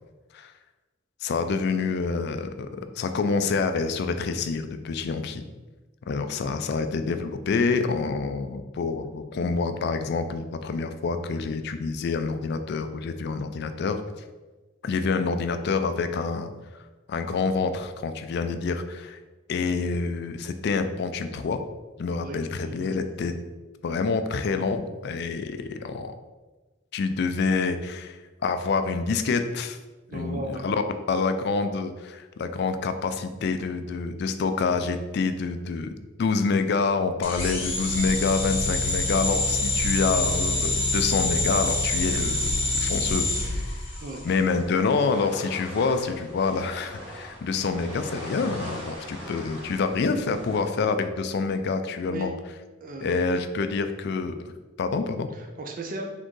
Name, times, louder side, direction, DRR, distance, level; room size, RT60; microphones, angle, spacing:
voice 1, 1.2-5.4 6.1-14.0 14.8-16.5 17.1-19.2 19.5-21.6 22.0-23.3 23.8-26.2 26.9-29.8 30.1-30.8 31.1-43.8 44.2-52.3 53.0-54.5 54.8-55.3, left 4 dB, 55° left, 9 dB, 0.3 m, -27 dB
voice 2, 30.1-30.6 44.0-44.3 52.1-52.3 52.8-53.2 55.3-56.1, right 1 dB, 40° right, 2 dB, 0.4 m, -36 dB
sound 1, 37.2-44.3, left 2 dB, 30° left, 0.9 m, -26 dB
sound 2, 44.3-50.7, equal, 25° right, 1.5 m, -41 dB
4.3 x 3.5 x 3.1 m, 1.2 s
head